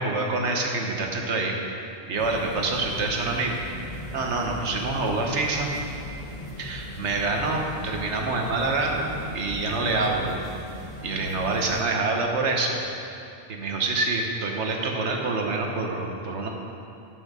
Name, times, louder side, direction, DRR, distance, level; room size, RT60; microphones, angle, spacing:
voice 1, 0.0-1.6 2.1-5.7 6.6-10.4 11.0-12.8 13.5-16.5, right 3 dB, 85° right, 1 dB, 1.3 m, -26 dB
sound 1, 2.2-11.8, left 1 dB, 30° left, 0.8 m, -38 dB
9.1 x 5.7 x 6.7 m, 2.6 s
omnidirectional pair, 1.1 m